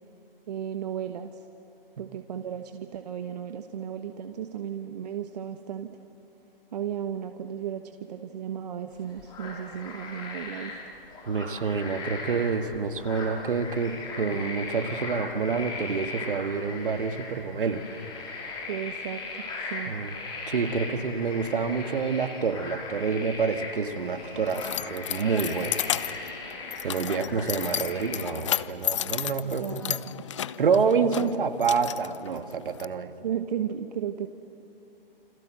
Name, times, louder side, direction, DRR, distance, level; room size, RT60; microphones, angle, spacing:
voice 1, 0.5-1.3 2.0-5.9 6.7-10.7 18.7-19.9 29.4-30.2 33.2-34.3, right 9 dB, 45° right, 7 dB, 1.2 m, -34 dB
sound 1, 8.9-28.2, left 3 dB, 15° left, 5.2 m, -38 dB
voice 2, 11.3-17.8 19.9-20.1 20.5-25.8 26.8-30.0 30.6-33.1, right 5 dB, 60° right, 8 dB, 2.2 m, -28 dB
Keys jangling, 23.8-32.8, left 11 dB, 30° left, 0.6 m, -33 dB
29.0 x 26.0 x 7.9 m, 2.9 s
hypercardioid pair, 145°, 30 cm